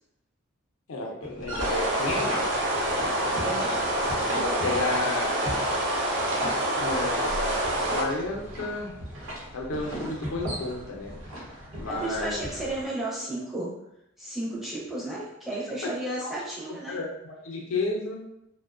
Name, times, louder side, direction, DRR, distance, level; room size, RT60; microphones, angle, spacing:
voice 1, 0.9-2.6 4.3-5.4 6.8-7.5 7.9-9.0 9.5-11.1 11.7-12.4 15.8-15.9 16.2-16.3 16.6-18.2, left 2 dB, 90° left, 0 dB, 0.5 m, -32 dB
sound 1, 1.2-12.8, equal, 80° right, 0.8 m, -38 dB
sound 2, 1.6-8.0, right 1 dB, 60° right, 0.4 m, -27 dB
voice 2, 3.3-3.7 11.9-13.7 14.2-17.0, right 1 dB, ahead, -6 dB, 0.5 m, -33 dB
2.5 x 2.1 x 2.4 m, 0.80 s
head